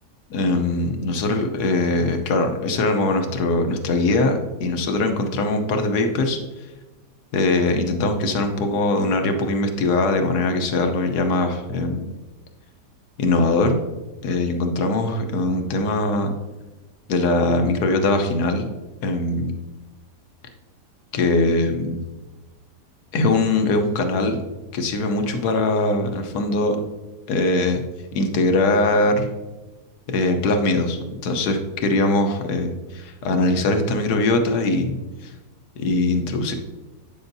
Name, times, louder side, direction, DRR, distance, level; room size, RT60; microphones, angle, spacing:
voice 1, 0.3-6.4 7.3-12.1 13.2-13.8 14.2-16.3 17.1-18.7 19.0-19.5 21.1-22.0 23.1-24.4 24.7-26.8 27.3-27.8 28.1-29.3 30.1-35.0 35.2-35.3 35.8-36.5, left 2 dB, 70° left, 5 dB, 1.3 m, -21 dB
8.7 x 7.1 x 2.6 m, 1.2 s
omnidirectional pair, 1.8 m